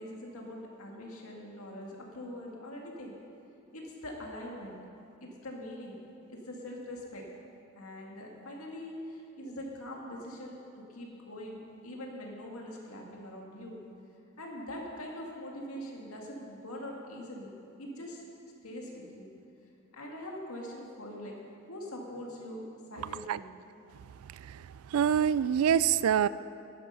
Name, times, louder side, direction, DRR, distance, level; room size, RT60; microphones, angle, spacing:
voice 1, 0.0-3.2 3.7-4.8 5.2-7.3 7.8-10.6 10.9-13.8 14.4-18.2 18.6-19.3 19.9-21.3 21.7-23.5, left 1 dB, 85° left, 2.0 m, -43 dB
voice 2, 24.2-26.3, right 8 dB, 80° right, 0.3 m, -26 dB
12.0 x 10.0 x 5.6 m
head